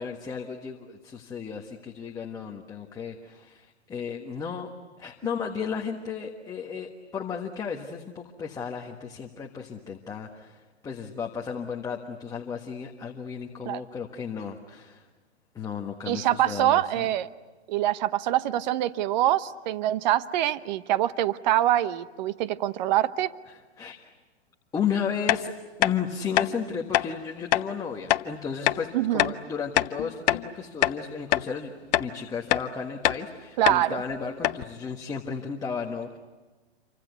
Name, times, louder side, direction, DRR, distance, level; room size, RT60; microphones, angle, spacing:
voice 1, 0.0-4.7 5.0-15.1 15.5-17.1 23.5-24.1 24.7-25.5 25.8-36.2, left 6 dB, 10° left, 1 dB, 1.4 m, -34 dB
voice 2, 16.1-17.3 17.7-23.3 28.9-29.3 33.6-34.0, right 13 dB, 40° right, 13 dB, 1.0 m, -25 dB
sound 1, 25.3-25.4 25.8-26.0 26.3-26.5 26.9-27.1 27.5-27.7 28.1-28.2 28.7-28.8 29.2-29.4 29.8-30.5 30.8-31.0 31.3-31.5 31.9-32.1 32.5-32.7 33.0-33.2 33.7-33.8 34.1-34.2 34.4-34.6, left 15 dB, 40° left, 0.8 m, -23 dB
28.5 x 25.0 x 8.2 m, 1.3 s
hypercardioid pair, 145°, 34 cm